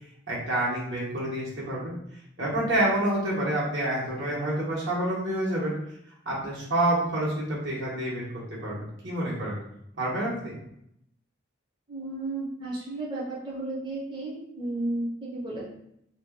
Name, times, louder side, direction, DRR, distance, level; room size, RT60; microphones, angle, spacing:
voice 1, 0.3-1.9 2.4-5.7 6.2-8.2 8.5-9.6 10.0-10.6, right 1 dB, 70° right, -6 dB, 1.2 m, -28 dB
voice 2, 11.9-15.6, right 2 dB, 25° right, -7 dB, 0.6 m, -33 dB
2.6 x 2.2 x 3.5 m, 0.75 s
head